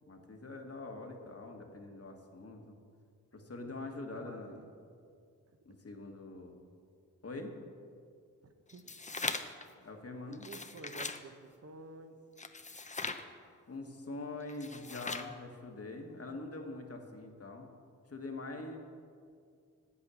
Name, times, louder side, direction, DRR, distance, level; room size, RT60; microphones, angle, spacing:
voice 1, 0.1-2.8 3.3-4.6 5.6-6.6 7.2-7.6 9.8-10.5 13.7-17.7 18.1-18.8, left 2 dB, 40° left, 3 dB, 1.6 m, -44 dB
voice 2, 3.6-4.7 8.4-8.9 10.2-12.2, right 3 dB, 45° right, 8 dB, 1.0 m, -51 dB
sound 1, 8.7-9.7 10.3-11.2 12.4-13.2 14.5-15.3, left 3 dB, 20° left, 0.7 m, -40 dB
8.5 x 8.5 x 6.3 m, 2.3 s
cardioid pair, 45°, 35 cm